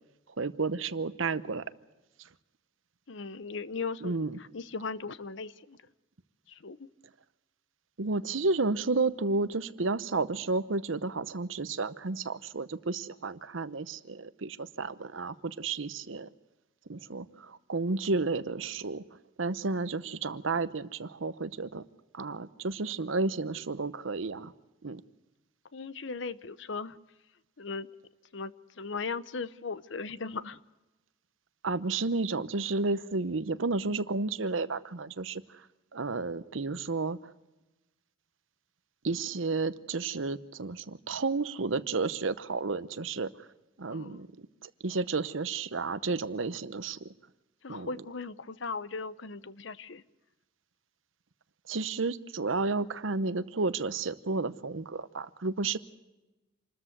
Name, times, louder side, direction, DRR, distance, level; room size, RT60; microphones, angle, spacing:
voice 1, 0.4-1.7 4.0-4.4 8.0-16.3 16.9-19.0 19.4-21.8 22.1-24.5 24.8-25.0 31.6-35.6 35.9-37.3 39.0-43.3 43.8-44.3 44.6-47.1 47.7-47.9 51.7-55.8, right 3 dB, 80° right, 15 dB, 0.9 m, -32 dB
voice 2, 3.1-5.8 6.5-6.9 25.7-27.0 27.6-27.9 28.3-30.6 43.9-44.2 47.6-50.0, left 4 dB, 65° left, 16 dB, 0.8 m, -38 dB
27.0 x 13.5 x 8.0 m, 1.1 s
head